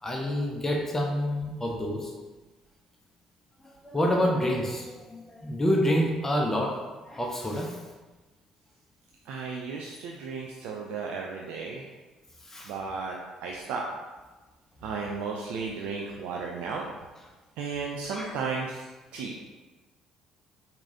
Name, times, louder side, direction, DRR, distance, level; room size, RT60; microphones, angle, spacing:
voice 1, 0.0-2.1 3.6-6.8 7.1-7.8 12.4-12.7 18.1-18.3, equal, 20° left, -1 dB, 0.5 m, -28 dB
voice 2, 9.3-11.9 12.6-13.8 14.8-16.9 17.6-19.4, right 4 dB, 60° right, -1 dB, 0.3 m, -34 dB
4.5 x 2.7 x 2.7 m, 1.2 s
figure-of-eight pair, 50°, 2 cm